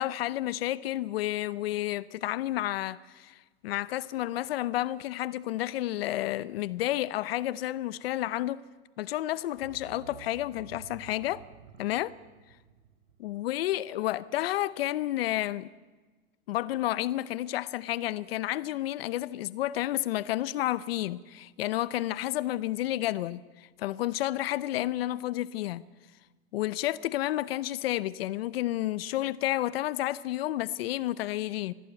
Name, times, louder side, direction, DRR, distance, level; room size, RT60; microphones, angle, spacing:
voice 1, 0.0-8.6 9.0-11.4 11.8-12.2 13.2-15.7 16.5-25.9 26.5-31.7, left 15 dB, 80° left, 0.7 m, -31 dB
sound 1, 9.5-14.3 14.6-14.7, right 8 dB, 85° right, 1.3 m, -52 dB
22.0 x 15.0 x 9.0 m
supercardioid pair, 155°, 29 cm